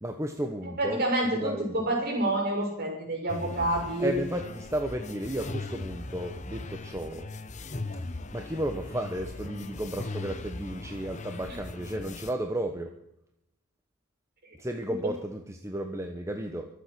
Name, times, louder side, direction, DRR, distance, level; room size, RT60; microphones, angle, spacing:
voice 1, 0.0-1.7 4.0-7.3 8.3-12.9 14.5-16.7, right 1 dB, 15° right, 4 dB, 1.0 m, -33 dB
voice 2, 0.8-4.1, right 1 dB, 45° right, 1 dB, 6.7 m, -28 dB
sound 1, 3.3-12.3, left 2 dB, 35° left, 0.9 m, -39 dB
24.0 x 8.5 x 6.0 m, 0.81 s
head